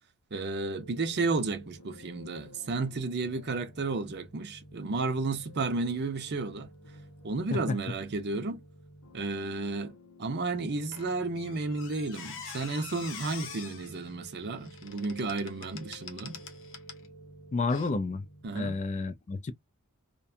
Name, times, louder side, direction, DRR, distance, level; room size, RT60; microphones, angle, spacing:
voice 1, 0.3-6.7 7.2-8.6 9.1-9.9 10.2-16.4 18.4-18.8, right 3 dB, 50° right, 0.6 m, -32 dB
sound 1, 0.8-18.5, equal, 90° left, 0.8 m, -52 dB
Squeak, 10.9-17.1 17.7-17.9, left 6 dB, 60° left, 0.7 m, -45 dB
voice 2, 17.5-18.3 18.5-19.5, left 3 dB, 30° left, 0.3 m, -30 dB
2.6 x 2.2 x 2.5 m
head